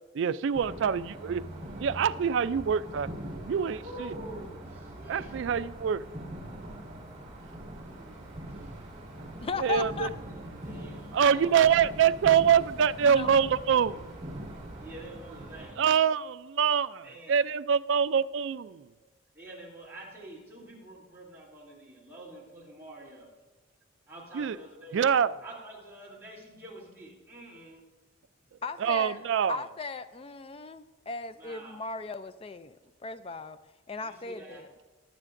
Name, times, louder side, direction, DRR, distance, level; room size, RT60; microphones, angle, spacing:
voice 1, 0.1-1.4 1.8-3.1 3.5-4.1 5.1-6.0 9.6-10.1 11.1-14.0 15.8-18.9 24.3-24.6 24.9-25.3 28.8-29.6, right 7 dB, 60° right, 16 dB, 0.3 m, -25 dB
sound 1, 0.5-15.7, right 1 dB, 35° right, 2.0 m, -42 dB
voice 2, 3.7-5.4 7.4-8.3 10.3-11.7 14.8-16.1 17.0-17.4 19.3-23.3 24.1-25.0 25.4-27.8 29.1-29.2 31.4-31.8 34.0-34.6, right 1 dB, 10° right, -6 dB, 2.8 m, -47 dB
voice 3, 9.4-10.1 13.0-13.5 28.6-29.2 29.5-32.8 33.0-33.6 33.9-34.7, left 4 dB, 25° left, 12 dB, 0.3 m, -37 dB
19.5 x 7.3 x 2.5 m, 1.3 s
head